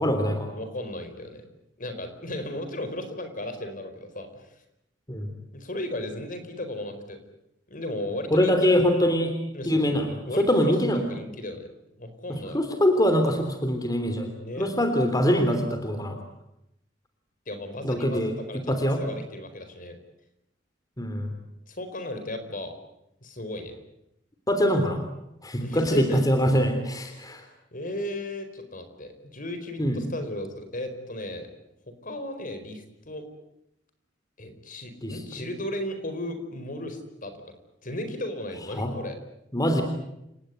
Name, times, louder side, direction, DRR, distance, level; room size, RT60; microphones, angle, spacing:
voice 1, 0.0-0.5 5.1-5.3 8.3-9.3 9.7-10.1 10.4-11.0 12.3-16.2 17.8-18.3 18.7-19.0 21.0-21.3 24.5-25.0 25.4-27.4 29.8-30.0 35.0-35.2 38.8-38.9 39.5-39.8, equal, 20° left, 6 dB, 3.4 m, -23 dB
voice 2, 0.5-1.4 1.8-4.6 5.5-7.2 7.7-8.7 9.5-9.9 10.3-12.6 14.4-14.7 17.5-20.0 21.7-22.7 23.2-23.7 25.6-26.3 27.1-27.2 27.7-31.5 32.0-33.2 34.4-37.4 37.8-39.2, left 1 dB, 45° left, 8 dB, 4.7 m, -35 dB
29.5 x 18.5 x 9.4 m, 0.83 s
head